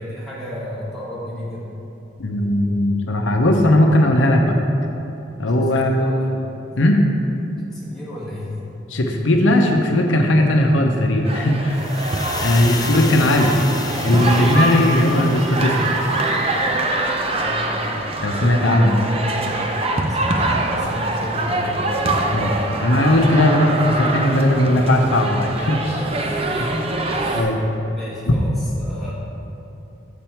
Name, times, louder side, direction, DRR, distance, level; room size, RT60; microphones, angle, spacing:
voice 1, 0.0-1.7 5.6-6.4 6.7-6.8 7.7-8.6 17.3-18.0 19.4-21.9 25.9-27.5 27.9-29.1, left 1 dB, ahead, -9 dB, 1.8 m, -33 dB
voice 2, 2.2-4.6 5.4-6.0 6.7-7.0 8.9-11.8 12.4-13.6 14.0-15.8 18.2-18.9 22.3-22.5 22.8-25.9 27.3-27.6, left 1 dB, 90° left, 3 dB, 0.7 m, -17 dB
sound 1, 11.2-27.4, right 2 dB, 30° right, 0.5 m, -24 dB
sound 2, 11.7-16.8, left 4 dB, 20° left, 0.4 m, -33 dB
7.1 x 6.8 x 4.5 m, 2.9 s
head